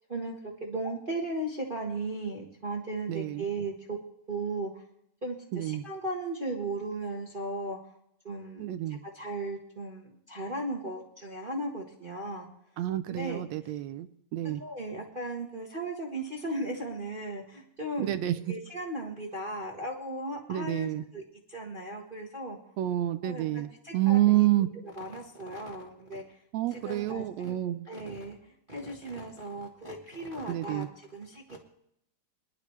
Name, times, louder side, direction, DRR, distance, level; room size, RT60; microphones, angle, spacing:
voice 1, 0.1-4.0 4.3-4.8 5.2-7.8 8.2-12.5 13.1-13.4 14.5-18.2 18.5-21.2 21.5-22.6 23.2-24.5 24.8-26.2 26.7-27.6 27.9-28.4 28.7-31.6, right 2 dB, 45° right, -1 dB, 0.7 m, -36 dB
voice 2, 3.1-3.4 5.5-5.8 8.6-9.0 12.8-14.6 18.0-18.5 20.5-21.0 22.8-24.7 26.5-27.9 30.5-30.9, right 14 dB, 75° right, 11 dB, 1.7 m, -28 dB
22.5 x 11.0 x 3.2 m, 0.74 s
omnidirectional pair, 3.4 m